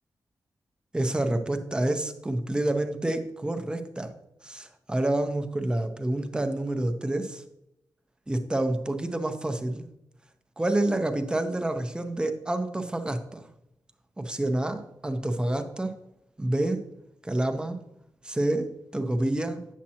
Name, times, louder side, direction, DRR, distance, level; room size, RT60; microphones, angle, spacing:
voice 1, 0.9-4.1 4.4-7.4 8.3-9.9 10.6-13.5 14.2-15.9 16.4-16.8 17.2-17.8 18.2-19.6, right 1 dB, 10° right, 6 dB, 0.6 m, -28 dB
8.6 x 7.3 x 2.8 m, 0.83 s
wide cardioid pair, 175°, 7 cm